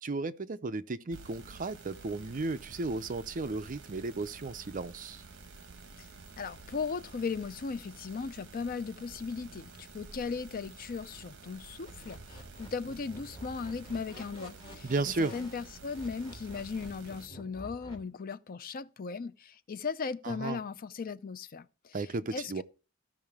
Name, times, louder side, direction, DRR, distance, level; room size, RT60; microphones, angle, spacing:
voice 1, 0.0-5.2 14.8-15.3 20.2-20.6 21.9-22.6, right 3 dB, 40° right, 0.6 m, -34 dB
sound 1, 1.1-17.3, right 3 dB, 60° right, 1.1 m, -51 dB
voice 2, 6.4-14.9 15.2-22.0 22.3-22.6, left 5 dB, 45° left, 0.5 m, -37 dB
sound 2, 11.8-17.9, equal, 25° left, 3.2 m, -49 dB
14.5 x 5.6 x 3.5 m
head